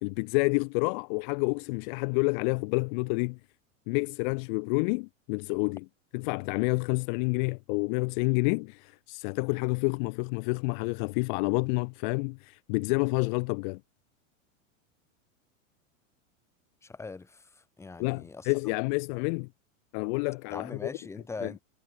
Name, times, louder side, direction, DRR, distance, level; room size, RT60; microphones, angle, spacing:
voice 1, 0.0-3.4 3.9-5.8 6.1-13.8 18.0-19.5 19.9-20.9 21.4-21.5, left 34 dB, 35° left, 1.6 m, -29 dB
voice 2, 16.8-18.5 20.5-21.6, left 4 dB, 5° left, 3.9 m, -41 dB
supercardioid pair, 170°, 39 cm